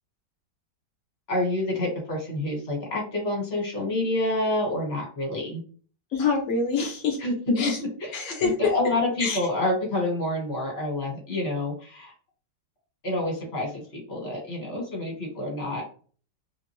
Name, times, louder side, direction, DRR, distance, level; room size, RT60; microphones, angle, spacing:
voice 1, 1.3-5.6 7.2-7.7 8.0-8.1 8.4-12.1 13.0-15.8, left 1 dB, 40° left, 0 dB, 1.3 m, -28 dB
voice 2, 6.1-7.2 7.6-7.8 8.1-8.7 9.2-9.4, left 5 dB, 75° left, 0 dB, 0.7 m, -26 dB
2.9 x 2.4 x 2.9 m, 0.41 s
omnidirectional pair, 2.0 m